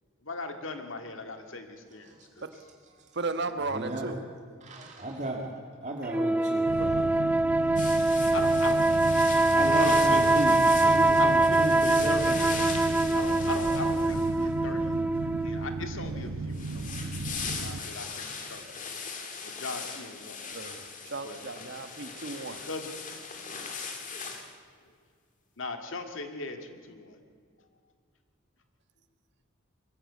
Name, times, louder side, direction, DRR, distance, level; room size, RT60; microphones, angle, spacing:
voice 1, 0.2-2.5 7.6-7.8 8.3-8.8 9.8-10.2 11.2-12.3 13.1-15.0 15.4-18.7 19.4-20.4 21.2-21.4 22.5-23.1 25.6-27.2, left 3 dB, 65° left, 6 dB, 2.0 m, -39 dB
voice 2, 3.1-4.2 6.8-7.0 20.5-22.6, right 3 dB, 55° right, 9 dB, 1.3 m, -35 dB
voice 3, 3.7-4.1 4.6-8.1 9.4-13.2, right 1 dB, 35° right, 0 dB, 2.0 m, -35 dB
sound 1, 6.1-15.8, right 2 dB, 5° right, 0.5 m, -24 dB
sound 2, 6.7-17.8, right 3 dB, 85° right, 0.9 m, -36 dB
sound 3, 7.8-14.6 16.5-24.5, left 5 dB, 40° left, 2.2 m, -40 dB
22.0 x 15.0 x 8.5 m, 2.1 s
head